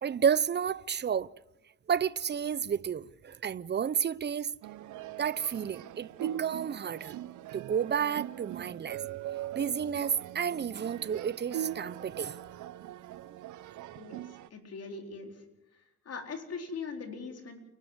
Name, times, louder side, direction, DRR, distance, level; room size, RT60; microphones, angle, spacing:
voice 1, 0.0-1.3 1.9-4.5 5.2-7.1 7.5-9.0 9.5-12.5, right 7 dB, 35° right, 0.7 m, -31 dB
sound 1, 4.6-14.5, right 12 dB, 75° right, 0.8 m, -41 dB
voice 2, 14.0-15.4 15.7-17.6, left 4 dB, 55° left, 4.2 m, -41 dB
29.0 x 12.5 x 8.1 m
cardioid pair, 90°, 30 cm